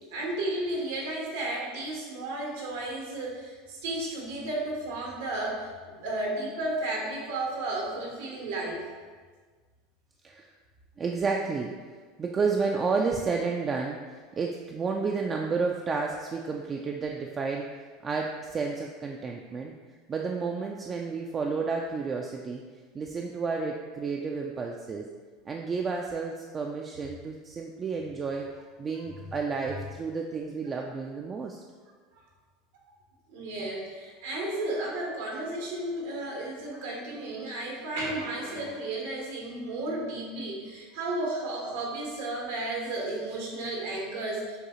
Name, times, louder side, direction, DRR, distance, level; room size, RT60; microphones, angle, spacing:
voice 1, 0.1-8.9 28.9-29.0 29.7-29.8 33.3-44.6, right 2 dB, 85° right, -2 dB, 1.2 m, -33 dB
voice 2, 11.0-11.7 12.2-19.7 20.1-22.6 22.9-25.1 25.5-28.4 28.8-31.6, right 4 dB, 25° right, 1 dB, 0.3 m, -31 dB
6.4 x 2.4 x 3.0 m, 1.5 s
supercardioid pair, 120°, 0 cm